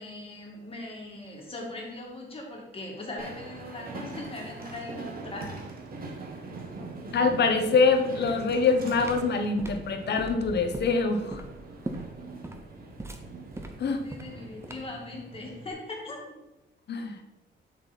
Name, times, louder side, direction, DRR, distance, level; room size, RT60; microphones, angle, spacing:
voice 1, 0.0-5.5 14.0-16.2, left 2 dB, 25° left, -1 dB, 2.2 m, -40 dB
Train, 3.2-15.7, right 3 dB, 45° right, 1.5 m, -42 dB
voice 2, 7.1-11.4 13.8-14.0 16.9-17.2, left 4 dB, 55° left, 6 dB, 1.1 m, -24 dB
sound 1, 8.8-15.0, right 2 dB, 15° right, 0.8 m, -40 dB
7.2 x 6.1 x 4.1 m, 1.0 s
cardioid pair, 115°, 20 cm